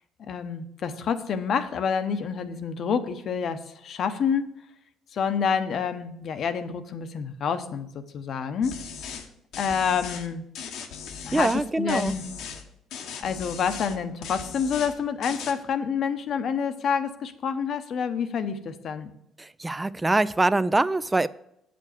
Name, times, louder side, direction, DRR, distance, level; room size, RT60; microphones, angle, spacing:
voice 1, 0.2-4.5 5.1-8.7 9.6-10.4 11.2-12.2 13.2-19.1, left 6 dB, 60° left, 10 dB, 0.9 m, -28 dB
sound 1, 8.6-9.3 9.5-10.3 10.5-11.6 11.9-12.6 12.9-14.0 14.2-14.9 15.2-15.5, left 6 dB, 75° left, 1.2 m, -38 dB
voice 2, 11.3-12.1 19.4-21.3, right 2 dB, 15° right, 18 dB, 0.4 m, -24 dB
8.1 x 5.2 x 6.7 m, 0.78 s
supercardioid pair, 80°, 0 cm